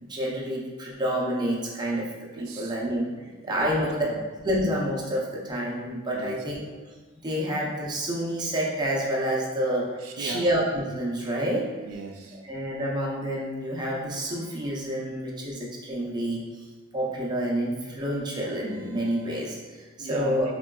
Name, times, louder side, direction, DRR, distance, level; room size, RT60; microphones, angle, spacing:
voice 1, 0.0-2.1 2.3-3.1 3.4-4.1 4.4-6.6 7.2-9.9 10.2-11.7 12.4-16.4 16.9-20.5, equal, 20° right, -3 dB, 0.5 m, -28 dB
voice 2, 2.4-2.8 3.1-4.2 6.1-6.4 10.0-10.5 11.8-12.4 20.0-20.5, right 4 dB, 85° right, 2 dB, 0.3 m, -39 dB
3.6 x 2.2 x 2.3 m, 1.3 s
head